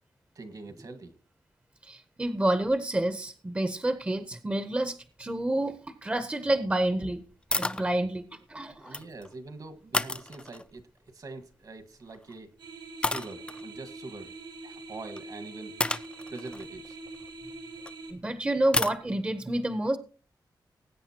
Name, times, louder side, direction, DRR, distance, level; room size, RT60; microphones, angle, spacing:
voice 1, 0.3-1.2 8.8-12.5 13.0-14.3 14.6-15.7 16.3-17.0, right 3 dB, 55° right, 9 dB, 1.6 m, -44 dB
voice 2, 1.8-5.7 6.0-7.2 7.5-9.0 18.1-20.0, right 1 dB, 15° right, 10 dB, 0.8 m, -29 dB
sound 1, 7.5-7.9 8.7-9.3 9.9-10.8 12.1-12.3 13.0-13.6 15.2-15.3 15.8-17.9 18.7-19.0, left 2 dB, 15° left, 0.5 m, -31 dB
sound 2, 12.6-18.1, right 3 dB, 75° right, 3.2 m, -44 dB
20.0 x 8.8 x 2.9 m, 0.36 s
wide cardioid pair, 155°, 8 cm